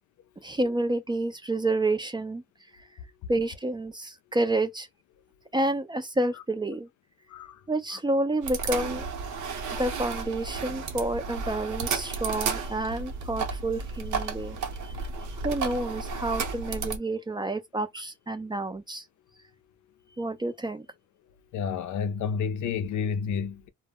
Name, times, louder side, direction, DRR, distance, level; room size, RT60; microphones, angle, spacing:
voice 1, 0.4-2.4 3.3-4.9 5.5-6.9 7.7-9.0 9.8-14.6 15.4-19.0 20.2-20.9, right 2 dB, 15° right, 0.3 m, -29 dB
voice 2, 7.3-7.6 21.5-23.7, left 6 dB, 75° left, 0.5 m, -30 dB
sound 1, 8.4-17.0, right 5 dB, 75° right, 0.8 m, -33 dB
2.1 x 2.0 x 3.4 m
cardioid pair, 90°, 30 cm